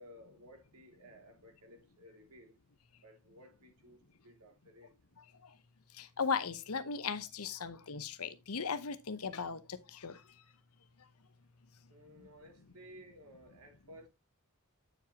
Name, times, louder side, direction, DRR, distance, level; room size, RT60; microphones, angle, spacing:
voice 1, 0.0-2.6 3.0-4.9 11.9-14.1, equal, 90° right, 2.8 m, -56 dB
voice 2, 5.9-10.2 12.2-12.3, left 5 dB, 80° left, 0.9 m, -37 dB
9.0 x 7.2 x 2.9 m
head